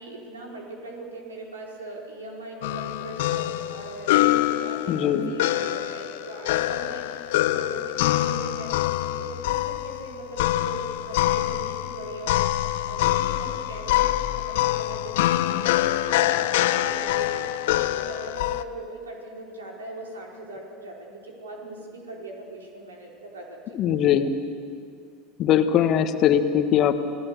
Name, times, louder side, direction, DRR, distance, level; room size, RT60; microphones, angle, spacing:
voice 1, 0.0-7.1 7.3-8.7 9.2-23.8, right 2 dB, 75° right, -1 dB, 4.6 m, -40 dB
sound 1, 2.6-18.6, left 14 dB, 65° left, 0.7 m, -25 dB
voice 2, 4.9-5.3 23.7-24.3 25.4-27.0, left 9 dB, 45° left, 9 dB, 1.5 m, -21 dB
28.5 x 18.5 x 6.9 m, 2.3 s
figure-of-eight pair, 75°, 0 cm